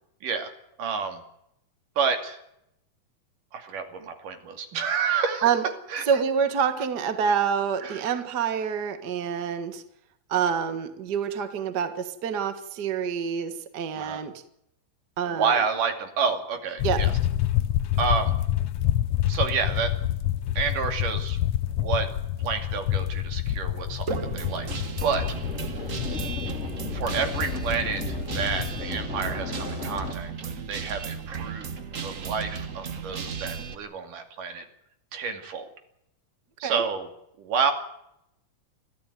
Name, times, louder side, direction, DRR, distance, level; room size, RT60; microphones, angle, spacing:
voice 1, 0.2-0.5 0.8-1.2 2.0-2.4 3.5-5.5 5.9-6.0 7.8-8.2 14.0-14.2 15.3-17.1 18.0-18.4 19.3-19.9 20.6-21.4 21.8-22.1 22.4-24.7 25.0-25.2 26.9-31.7 32.0-34.7 35.1-35.7 36.6-37.1 37.4-37.7, right 6 dB, 85° right, 6 dB, 4.1 m, -29 dB
voice 2, 6.1-9.8 10.3-14.3 15.2-15.6 16.8-17.0 36.6-36.8, right 7 dB, 40° right, 9 dB, 1.8 m, -27 dB
sound 1, 16.8-28.8, left 12 dB, 65° left, 2.0 m, -28 dB
Guitar, 24.1-33.7, right 6 dB, 65° right, 0.7 m, -35 dB
sound 2, 25.0-30.1, left 4 dB, 25° left, 2.3 m, -34 dB
23.5 x 15.0 x 9.2 m, 0.78 s
omnidirectional pair, 3.6 m